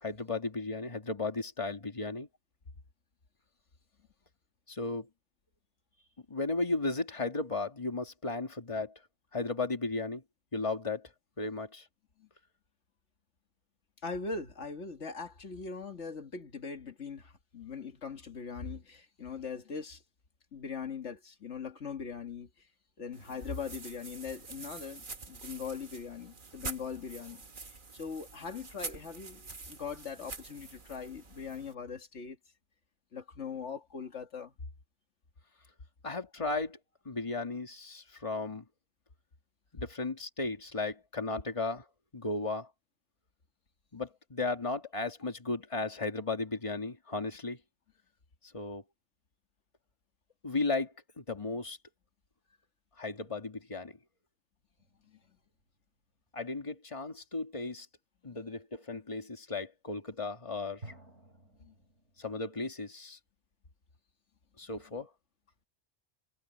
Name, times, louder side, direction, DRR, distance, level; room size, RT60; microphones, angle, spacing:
voice 1, 0.0-2.3 4.7-5.1 6.3-8.9 9.3-10.2 10.5-11.1 11.4-11.9 36.0-36.8 37.1-38.6 39.7-41.8 42.1-42.7 43.9-47.6 48.5-48.8 50.4-51.8 53.0-54.0 56.3-57.9 58.2-60.9 62.2-63.2 64.6-65.1, left 3 dB, 30° left, 2.0 m, -35 dB
voice 2, 14.0-20.0 20.5-22.7 23.0-32.4 33.1-34.5 55.1-55.2 58.3-58.4 61.6-61.7, left 5 dB, 85° left, 2.1 m, -41 dB
sound 1, 23.1-31.7, right 4 dB, 45° right, 1.6 m, -46 dB
sound 2, 54.8-56.1 60.8-62.7, right 2 dB, 80° right, 4.5 m, -54 dB
omnidirectional pair, 1.2 m